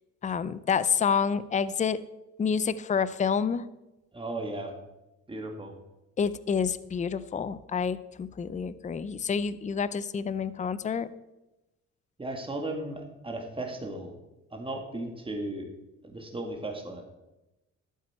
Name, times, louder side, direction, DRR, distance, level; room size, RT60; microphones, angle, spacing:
voice 1, 0.2-2.0 2.4-3.6 6.2-11.1, left 6 dB, 25° left, 16 dB, 0.5 m, -28 dB
voice 2, 4.1-4.7 5.3-5.7 12.2-14.1 14.5-15.7 16.0-17.0, right 2 dB, 15° right, 3 dB, 2.0 m, -35 dB
12.0 x 8.3 x 4.4 m, 0.97 s
cardioid pair, 90°, 30 cm